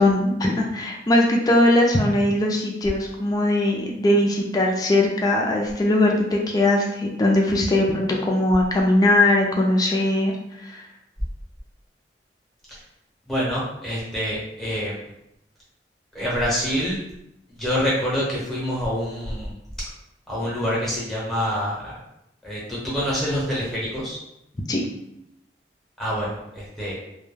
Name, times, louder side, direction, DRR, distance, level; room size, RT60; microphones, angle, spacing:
voice 1, 0.0-10.3 10.6-10.8 24.7-24.8, left 1 dB, 20° left, 0 dB, 0.3 m, -20 dB
voice 2, 13.3-15.0 16.1-17.0 17.5-19.5 20.3-22.0 22.4-24.2 26.0-27.0, equal, ahead, -7 dB, 0.8 m, -26 dB
2.2 x 2.1 x 3.1 m, 0.81 s
head